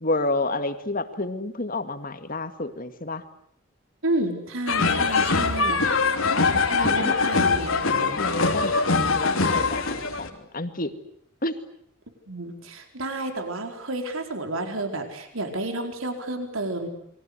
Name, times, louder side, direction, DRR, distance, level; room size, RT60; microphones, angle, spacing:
voice 1, 0.0-3.2 7.0-7.2 8.2-10.3 10.5-10.9 11.4-11.6, left 2 dB, 45° left, 9 dB, 2.1 m, -29 dB
voice 2, 4.0-5.8 6.7-8.2 12.3-16.9, right 1 dB, 80° right, 5 dB, 4.6 m, -31 dB
sound 1, 4.7-10.3, left 4 dB, 85° left, 3.3 m, -23 dB
30.0 x 23.0 x 8.2 m, 0.69 s
head